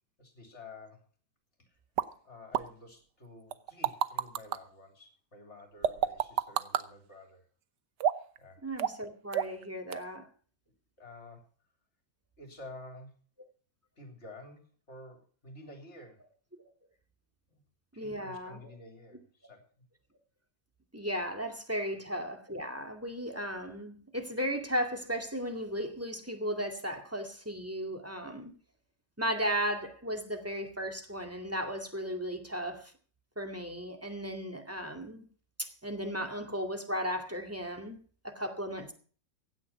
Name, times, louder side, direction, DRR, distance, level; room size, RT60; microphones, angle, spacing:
voice 1, 0.2-1.0 1.7-1.8 2.2-7.5 8.4-8.6 11.0-11.4 12.4-13.1 14.0-16.2 17.5-17.6 17.9-19.6 21.9-22.0, left 2 dB, 35° left, 3.8 m, -50 dB
sound 1, 2.0-2.1 2.5-2.6 3.5-4.6 5.8-6.8 8.0-8.4 8.8-9.0 9.3-9.6 9.9-10.0, right 9 dB, 70° right, 1.4 m, -28 dB
voice 2, 8.6-10.3 18.0-18.6 20.9-28.5 29.2-32.9 33.4-35.2 35.6-38.0 38.2-38.9, equal, 10° right, 2.1 m, -35 dB
16.0 x 10.0 x 5.8 m
omnidirectional pair, 2.0 m